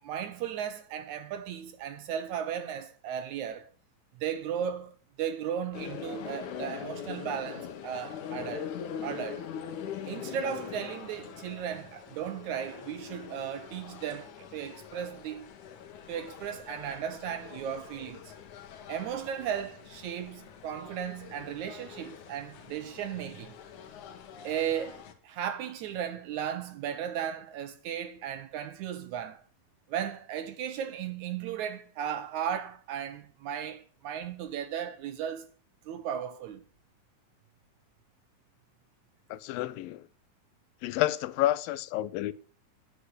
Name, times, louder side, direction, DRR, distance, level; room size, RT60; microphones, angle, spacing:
voice 1, 0.0-3.7 4.2-8.7 9.0-9.5 10.1-15.5 16.1-18.3 18.9-23.6 24.4-29.4 29.9-35.5 35.9-36.6, right 9 dB, 75° right, 1.9 m, -36 dB
sound 1, 5.7-25.1, left 8 dB, 65° left, 2.6 m, -43 dB
voice 2, 39.3-40.0 40.8-42.3, left 14 dB, 85° left, 2.4 m, -29 dB
10.0 x 8.1 x 8.0 m
omnidirectional pair, 4.0 m